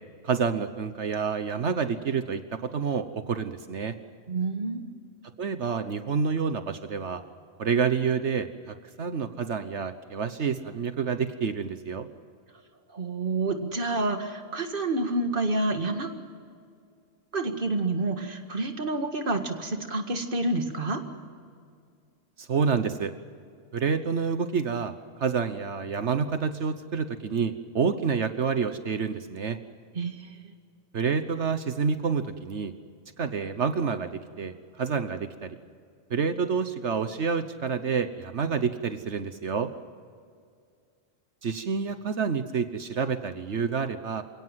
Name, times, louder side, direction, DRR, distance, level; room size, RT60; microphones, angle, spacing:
voice 1, 0.2-4.0 5.4-7.2 7.6-12.1 22.4-23.1 23.7-24.9 25.2-29.6 30.9-32.7 33.2-35.6 36.1-39.7 41.4-44.2, right 6 dB, 60° right, 10 dB, 1.3 m, -28 dB
voice 2, 4.3-4.9 12.9-16.1 17.3-21.0 30.0-30.4, right 2 dB, 40° right, 6 dB, 2.1 m, -28 dB
28.5 x 17.5 x 7.6 m, 2.2 s
omnidirectional pair, 1.4 m